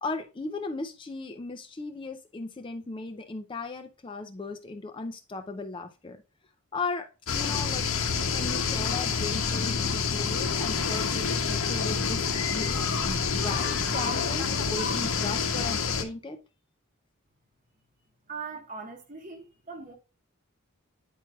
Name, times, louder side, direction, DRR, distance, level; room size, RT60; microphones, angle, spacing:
voice 1, 0.0-6.2 6.7-7.9 8.3-16.4, left 3 dB, 25° left, 0.4 m, -37 dB
sound 1, 7.3-16.0, left 5 dB, 75° left, 0.8 m, -28 dB
voice 2, 18.3-19.9, right 4 dB, 35° right, 1.0 m, -40 dB
9.1 x 4.5 x 2.3 m
head